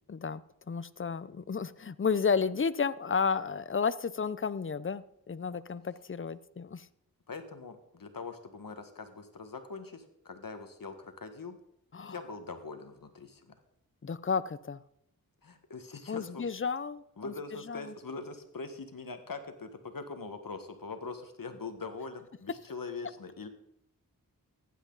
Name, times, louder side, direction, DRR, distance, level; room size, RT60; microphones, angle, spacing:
voice 1, 0.0-6.9 11.9-12.2 14.0-14.8 16.1-17.3 17.7-17.9, left 5 dB, 35° left, 17 dB, 0.6 m, -32 dB
voice 2, 7.3-11.6 12.1-13.5 15.4-16.4 17.2-23.5, left 4 dB, 65° left, 8 dB, 1.7 m, -42 dB
15.0 x 11.0 x 4.0 m, 0.76 s
cardioid pair, 50°, 36 cm